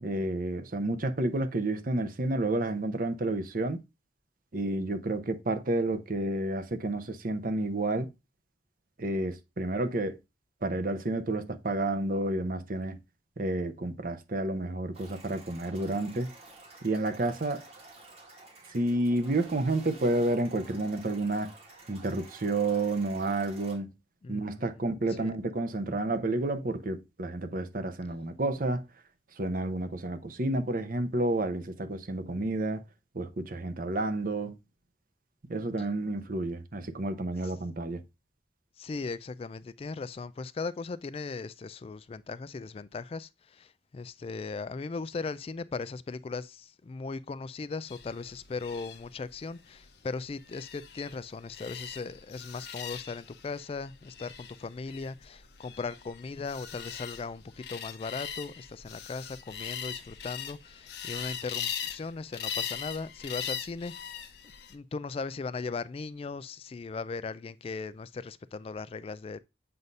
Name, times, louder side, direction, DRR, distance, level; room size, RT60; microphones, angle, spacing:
voice 1, 0.0-3.8 4.5-8.1 9.0-10.1 10.6-13.0 13.4-16.3 16.8-17.6 18.7-21.5 21.9-23.9 24.3-28.8 29.4-32.8 33.1-34.6 35.5-38.0, right 2 dB, 50° right, 0.8 m, -30 dB
sound 1, 14.9-23.8, right 2 dB, 35° right, 1.8 m, -51 dB
voice 2, 24.2-24.7 25.2-25.3 37.4-37.5 38.8-64.3 64.7-69.4, left 4 dB, 35° left, 0.3 m, -38 dB
sound 2, 47.9-64.8, left 8 dB, 65° left, 0.8 m, -41 dB
7.9 x 2.7 x 5.3 m
head